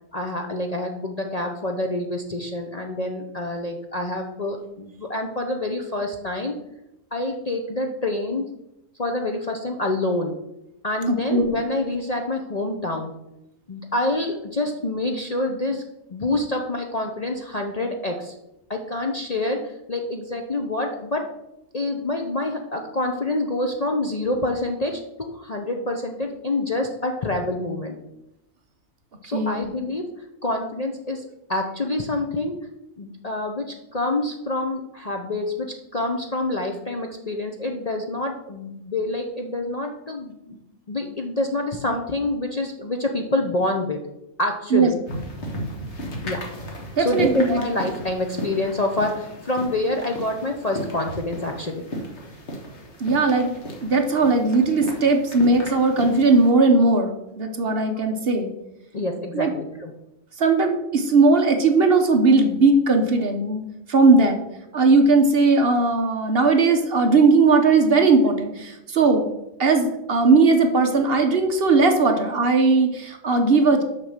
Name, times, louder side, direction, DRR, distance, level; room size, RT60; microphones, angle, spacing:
voice 1, 0.1-6.5 7.1-8.4 9.0-10.3 10.8-13.1 13.7-15.8 16.1-18.3 18.7-19.6 19.9-21.2 21.7-25.0 25.3-28.0 29.2-30.0 30.4-32.6 33.0-40.6 40.9-44.0 44.4-45.2 46.2-46.4 47.0-51.8 58.9-59.9, left 2 dB, 40° left, 3 dB, 0.7 m, -27 dB
voice 2, 11.1-11.6 29.3-29.7 44.7-44.9 47.0-47.6 53.0-53.5 53.8-58.5 59.3-59.5 60.4-63.6 63.9-64.4 64.7-69.3 69.6-73.8, right 3 dB, 50° right, 5 dB, 1.1 m, -18 dB
sound 1, 45.1-56.5, equal, 55° left, 1.8 m, -35 dB
6.4 x 5.9 x 6.5 m, 0.87 s
omnidirectional pair, 1.4 m